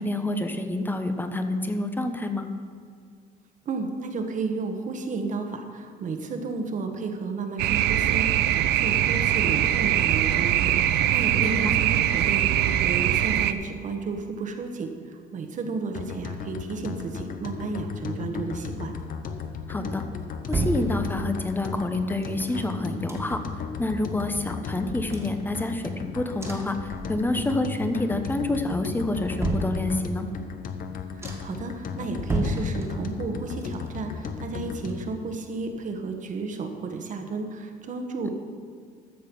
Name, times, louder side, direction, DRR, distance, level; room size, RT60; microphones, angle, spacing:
voice 1, 0.0-2.5 11.4-11.8 19.7-20.0 20.5-23.4 23.8-30.3, left 2 dB, 10° left, 7 dB, 1.0 m, -28 dB
voice 2, 3.6-18.9 31.1-38.3, right 4 dB, 50° right, 5 dB, 1.3 m, -32 dB
sound 1, 7.6-13.5, right 12 dB, 80° right, 0.5 m, -22 dB
sound 2, 15.9-35.1, left 6 dB, 55° left, 0.9 m, -36 dB
sound 3, 20.2-21.5 22.2-23.7 24.0-24.1 24.4-26.0 26.4-27.6 27.9-28.4 28.8-30.3 30.8-30.9 31.2-31.7 32.1-33.3 33.6-35.4 35.7-35.8, right 1 dB, 15° right, 1.8 m, -33 dB
13.0 x 6.6 x 5.4 m, 2.1 s
cardioid pair, 110°, 17 cm